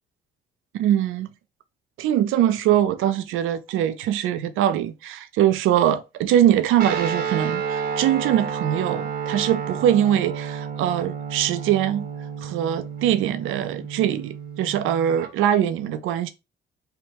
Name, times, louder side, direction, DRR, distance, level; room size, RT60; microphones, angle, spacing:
voice 1, 0.7-1.3 2.0-12.1 12.4-16.3, right 11 dB, 85° right, 0.4 m, -22 dB
Guitar, 6.8-15.3, right 6 dB, 55° right, 0.7 m, -31 dB
3.1 x 2.2 x 3.2 m
cardioid pair, 90°, 20 cm